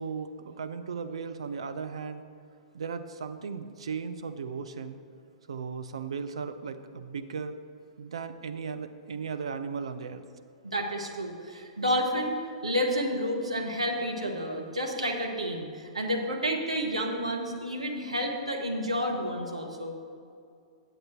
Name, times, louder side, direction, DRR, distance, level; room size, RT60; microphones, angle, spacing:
voice 1, 0.0-2.2 2.7-5.0 5.5-7.6 8.0-10.2, right 5 dB, 70° right, 9 dB, 0.6 m, -36 dB
voice 2, 10.6-12.4 12.6-19.9, equal, 85° right, 2 dB, 1.2 m, -30 dB
9.2 x 7.8 x 4.4 m, 2.4 s
figure-of-eight pair, 110°, 3 cm